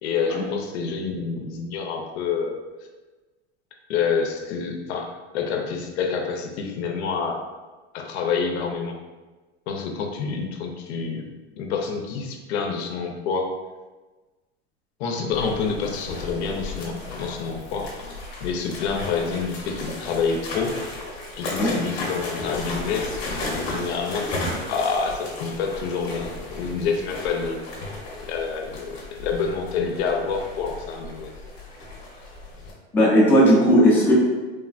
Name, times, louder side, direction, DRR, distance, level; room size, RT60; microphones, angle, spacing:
voice 1, 0.0-2.5 3.9-7.4 7.9-9.0 9.7-11.2 11.6-13.5 15.0-17.9 18.4-20.8 21.4-24.4 24.7-27.6 28.3-31.3, left 5 dB, 75° left, 3 dB, 0.5 m, -27 dB
sound 1, 15.3-32.7, left 2 dB, 40° left, 0.8 m, -34 dB
voice 2, 32.9-34.1, equal, 5° left, -7 dB, 0.4 m, -16 dB
3.2 x 2.1 x 2.4 m, 1.2 s
supercardioid pair, 145°, 33 cm